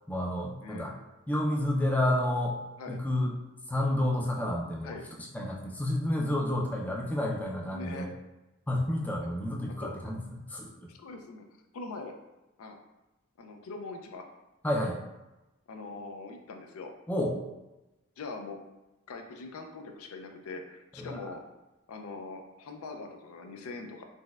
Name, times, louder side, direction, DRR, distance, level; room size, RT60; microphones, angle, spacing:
voice 1, 0.1-0.9 1.3-2.6 2.9-3.3 3.7-5.0 5.3-8.1 8.7-10.7 14.6-15.0 17.1-17.4 21.0-21.2, left 1 dB, 10° left, -2 dB, 0.3 m, -30 dB
voice 2, 7.7-8.1 9.2-9.3 9.8-9.9 10.9-11.5 11.7-12.1 12.6-12.8 13.4-14.2 15.7-16.9 18.2-18.6 19.1-21.4 21.9-24.0, left 3 dB, 80° left, 4 dB, 0.4 m, -42 dB
4.0 x 2.1 x 2.3 m, 1.0 s
head